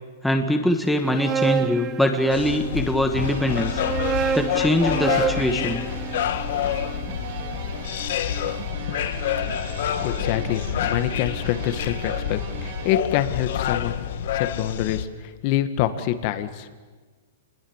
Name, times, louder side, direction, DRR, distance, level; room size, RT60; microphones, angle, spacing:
voice 1, 0.2-3.8 4.3-5.8, left 1 dB, ahead, 4 dB, 1.5 m, -22 dB
sound 1, 0.9-2.8 3.6-7.7, right 7 dB, 20° right, 0.7 m, -29 dB
sound 2, 2.3-15.0, left 10 dB, 60° left, 1.5 m, -28 dB
sound 3, 3.1-13.0, right 7 dB, 50° right, 3.4 m, -38 dB
voice 2, 10.0-14.0 14.3-16.7, left 12 dB, 40° left, 10 dB, 1.7 m, -26 dB
28.5 x 20.5 x 7.3 m, 1.4 s
hypercardioid pair, 160°, 0 cm